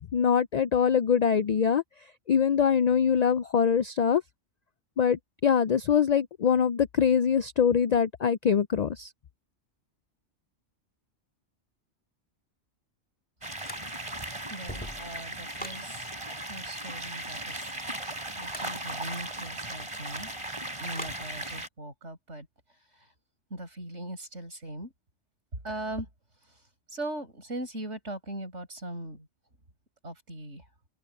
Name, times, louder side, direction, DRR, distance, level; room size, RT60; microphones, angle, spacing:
voice 1, 0.1-1.8 2.3-4.2 5.0-9.1, left 7 dB, 65° left, 0.4 m, -23 dB
sound 1, 13.4-21.7, right 1 dB, 25° right, 3.5 m, -37 dB
sound 2, 13.6-14.2 14.5-15.9 18.4-18.8 20.9-21.3, equal, 10° left, 1.7 m, -41 dB
voice 2, 14.5-16.1 16.5-17.6 18.4-20.3 20.8-22.5 23.5-24.9 25.6-26.1 26.9-29.3 30.0-30.6, right 1 dB, 80° right, 6.8 m, -39 dB
open air
omnidirectional pair, 1.2 m